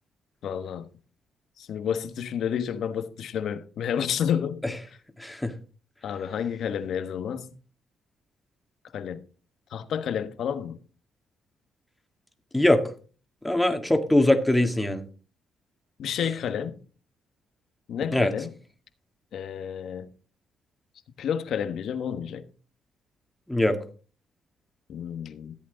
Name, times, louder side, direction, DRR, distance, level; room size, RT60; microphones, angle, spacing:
voice 1, 0.4-0.9 1.6-4.8 6.0-7.5 8.9-9.2 9.7-10.8 16.0-16.8 17.9-18.5 19.3-20.1 21.2-22.4 24.9-25.5, left 8 dB, 70° left, 1.2 m, -30 dB
voice 2, 5.2-5.5 12.5-12.8 13.4-15.0 16.2-16.3 18.1-18.3 23.5-23.8, left 1 dB, 5° left, 1.8 m, -22 dB
14.0 x 8.3 x 3.9 m
cardioid pair, 90°, 0 cm